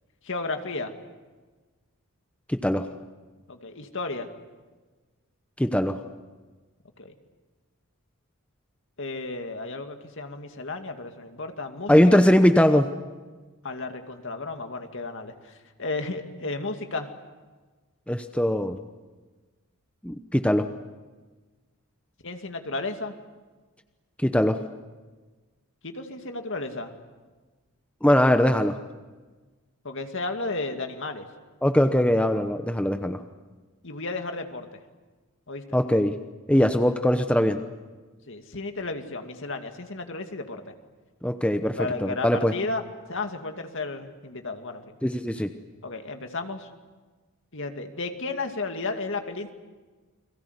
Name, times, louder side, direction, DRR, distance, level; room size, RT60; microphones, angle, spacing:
voice 1, 0.2-0.9 3.5-4.3 7.0-7.1 9.0-12.2 13.6-17.1 22.2-23.1 25.8-26.9 29.8-31.2 33.8-34.8 35.5-35.8 38.3-40.7 41.7-45.0 45.8-46.7 47.5-49.5, left 3 dB, 55° left, 6 dB, 2.3 m, -33 dB
voice 2, 2.5-2.9 5.6-6.0 11.9-12.9 18.1-18.8 20.0-20.7 24.2-24.6 28.0-28.8 31.6-33.2 35.7-36.2 36.5-37.6 41.2-42.5 45.0-45.5, equal, 5° left, 7 dB, 0.9 m, -21 dB
30.0 x 22.0 x 8.2 m, 1.3 s
head